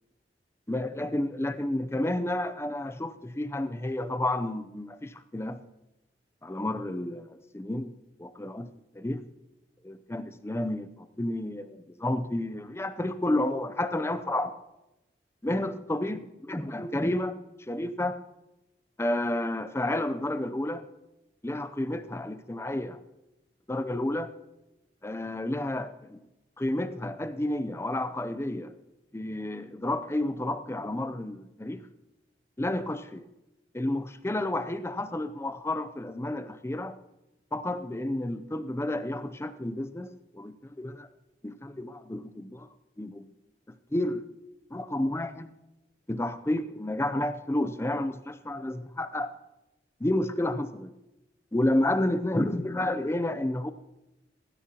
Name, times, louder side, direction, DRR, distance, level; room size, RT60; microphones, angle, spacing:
voice 1, 0.7-5.6 6.4-7.9 8.2-9.2 9.8-14.6 15.4-17.4 17.7-18.2 19.0-20.8 21.4-23.0 23.7-24.3 25.0-26.2 26.6-28.7 29.1-31.8 32.6-33.3 33.7-37.0 37.5-41.1 41.4-42.7 43.0-43.3 43.9-44.2 44.7-45.5 46.1-49.3 50.0-50.9 51.5-53.7, left 1 dB, 15° left, 10 dB, 0.5 m, -31 dB
16.5 x 15.5 x 2.9 m, 0.97 s
head